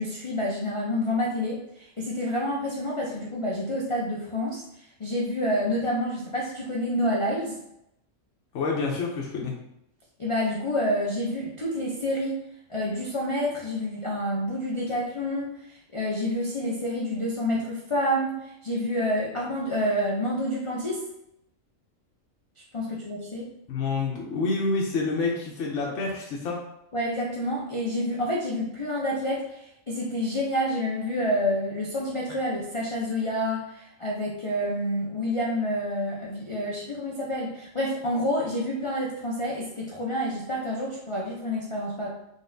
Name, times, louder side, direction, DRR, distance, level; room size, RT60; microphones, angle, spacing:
voice 1, 0.0-7.6 10.2-12.4 12.7-21.0 22.7-23.4 26.9-42.1, equal, 45° left, -4 dB, 0.4 m, -28 dB
voice 2, 8.5-9.6 23.7-26.6, left 3 dB, 70° left, -2 dB, 1.0 m, -28 dB
3.9 x 3.6 x 2.6 m, 0.81 s
omnidirectional pair, 1.4 m